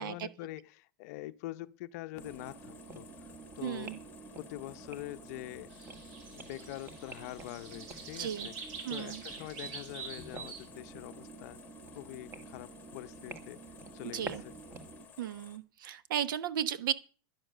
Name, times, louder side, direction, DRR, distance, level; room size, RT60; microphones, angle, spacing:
voice 1, 0.0-3.1 3.6-3.9 4.4-5.7 6.3-8.6 8.9-11.6 11.9-13.6 13.9-14.5, left 17 dB, 45° left, 0.7 m, -44 dB
sound 1, 2.1-15.1, right 3 dB, 20° right, 1.6 m, -49 dB
sound 2, 2.2-15.6, left 8 dB, 15° left, 1.5 m, -57 dB
voice 2, 3.6-4.0 8.2-8.5 8.8-9.2 14.1-14.4 15.2-16.9, right 9 dB, 65° right, 1.3 m, -35 dB
sound 3, 5.7-10.7, right 5 dB, 40° right, 3.9 m, -46 dB
11.0 x 11.0 x 6.7 m
supercardioid pair, 170°, 12 cm